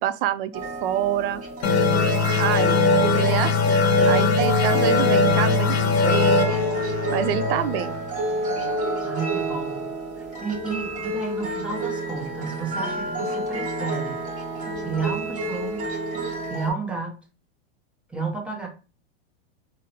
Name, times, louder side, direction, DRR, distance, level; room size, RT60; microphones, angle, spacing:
voice 1, 0.0-1.4 2.4-2.8 3.1-6.6 7.1-8.0, right 12 dB, 60° right, 12 dB, 0.4 m, -27 dB
sound 1, 0.5-16.7, right 2 dB, 25° right, 1.0 m, -29 dB
sound 2, 1.6-8.9, left 4 dB, 75° left, 0.7 m, -21 dB
voice 2, 9.0-14.2 14.8-15.8 16.5-17.2 18.1-18.7, right 4 dB, 5° right, -1 dB, 0.5 m, -31 dB
3.7 x 2.0 x 2.7 m, 0.35 s
supercardioid pair, 145°, 33 cm